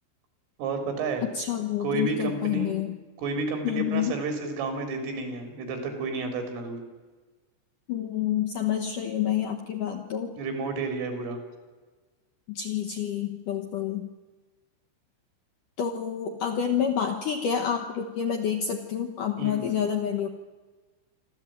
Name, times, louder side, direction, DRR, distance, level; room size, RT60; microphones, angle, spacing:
voice 1, 0.6-1.2 1.8-2.8 3.2-6.8 10.4-11.4 19.4-19.7, right 3 dB, 85° right, 6 dB, 6.3 m, -31 dB
voice 2, 1.3-3.0 3.6-4.2 7.9-10.3 12.5-14.1 15.8-20.3, left 9 dB, 70° left, 4 dB, 2.1 m, -28 dB
26.5 x 13.5 x 9.3 m, 1.3 s
omnidirectional pair, 5.6 m